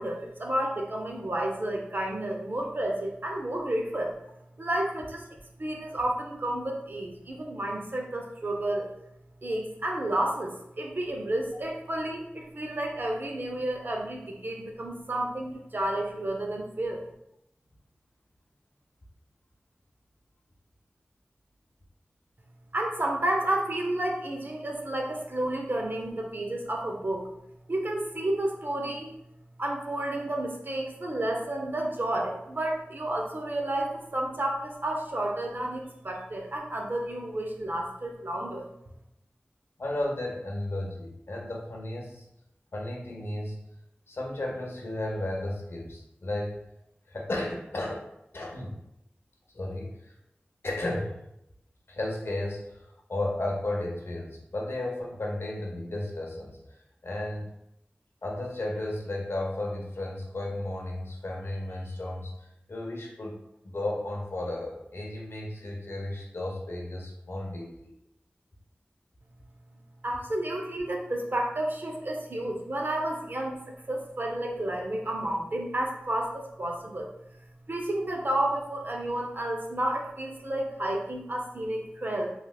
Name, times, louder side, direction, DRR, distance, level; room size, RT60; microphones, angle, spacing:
voice 1, 0.0-4.1 4.6-5.2 5.6-8.9 9.4-17.0 22.7-27.3 27.7-29.1 29.6-38.7 70.0-77.1 77.7-82.3, right 1 dB, 55° right, 0 dB, 0.6 m, -31 dB
voice 2, 39.8-42.2 42.7-43.6 44.1-46.6 47.1-48.0 48.3-48.7 49.5-49.9 50.6-51.2 51.9-56.6 57.0-57.5 58.2-63.4 63.6-67.9, left 1 dB, 85° left, -1 dB, 0.7 m, -34 dB
3.2 x 3.0 x 2.3 m, 0.82 s
wide cardioid pair, 50°, 4 cm